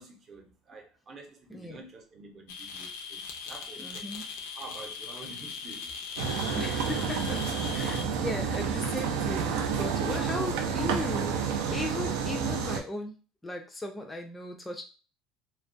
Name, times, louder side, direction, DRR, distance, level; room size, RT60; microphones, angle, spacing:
voice 1, 0.0-4.2 4.5-6.0, right 3 dB, 35° right, 0.7 m, -48 dB
voice 2, 1.5-1.8 3.8-4.2 6.5-13.2 13.4-14.8, left 2 dB, 10° left, 0.3 m, -37 dB
sound 1, 2.5-8.0, left 5 dB, 85° left, 0.4 m, -39 dB
sound 2, 6.2-12.8, right 6 dB, 85° right, 0.4 m, -30 dB
2.2 x 2.1 x 2.5 m
cardioid pair, 125°, 0 cm